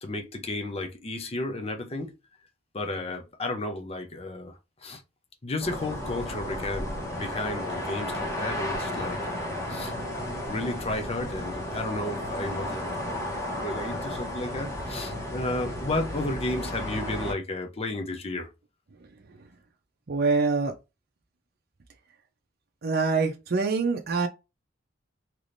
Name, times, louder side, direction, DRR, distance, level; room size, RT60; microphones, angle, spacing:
voice 1, 0.0-2.2 2.7-5.0 5.4-9.9 10.5-13.2 13.6-18.5, left 2 dB, 30° left, 0.6 m, -33 dB
sound 1, 5.6-17.3, left 1 dB, 15° left, 1.0 m, -33 dB
voice 2, 18.9-19.4 20.1-20.7 22.8-24.3, right 4 dB, 50° right, 0.6 m, -25 dB
3.4 x 3.0 x 2.5 m
head